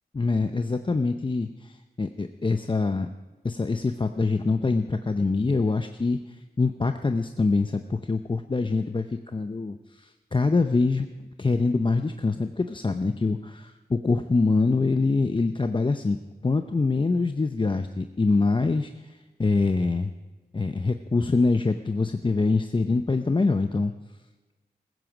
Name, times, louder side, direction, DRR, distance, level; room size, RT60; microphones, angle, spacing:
voice 1, 0.1-3.1 3.4-6.2 6.6-11.1 11.4-20.1 20.5-23.9, left 3 dB, 30° left, 8 dB, 0.7 m, -25 dB
15.5 x 14.0 x 5.0 m, 1.2 s
cardioid pair, 55°, 17 cm